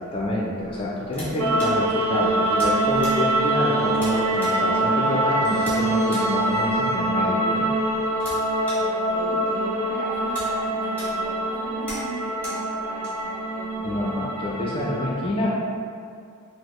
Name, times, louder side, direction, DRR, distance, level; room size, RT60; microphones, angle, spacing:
voice 1, 0.0-7.7 13.8-15.8, left 1 dB, 25° left, -5 dB, 0.3 m, -27 dB
sound 1, 0.6-14.8, equal, 5° left, 0.9 m, -43 dB
voice 2, 1.3-1.7 8.8-13.9, equal, 40° right, -7 dB, 0.8 m, -37 dB
sound 2, 1.4-15.1, right 1 dB, 85° right, 0.4 m, -24 dB
4.1 x 2.0 x 3.0 m, 2.3 s
head